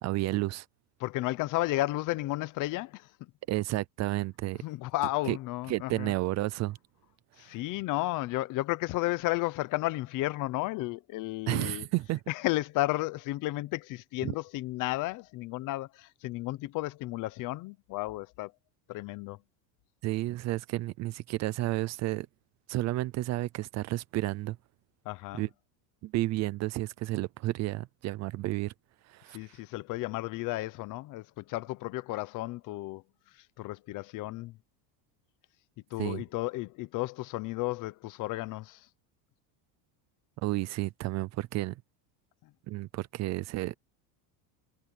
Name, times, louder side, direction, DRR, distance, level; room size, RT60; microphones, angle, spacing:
voice 1, 0.0-0.7 3.5-4.6 5.3-5.4 5.7-6.8 11.5-12.2 14.2-14.3 20.0-22.3 22.7-24.6 25.3-25.5 26.0-28.7 29.1-29.4 36.0-36.2 40.4-41.8 42.7-43.7, right 18 dB, 35° right, 0.6 m, -31 dB
voice 2, 1.0-3.1 4.6-6.1 7.4-11.9 12.3-18.5 18.9-19.4 25.1-25.4 29.3-33.0 33.6-34.5 35.9-38.8, left 18 dB, 45° left, 0.9 m, -33 dB
cardioid pair, 160°, 45 cm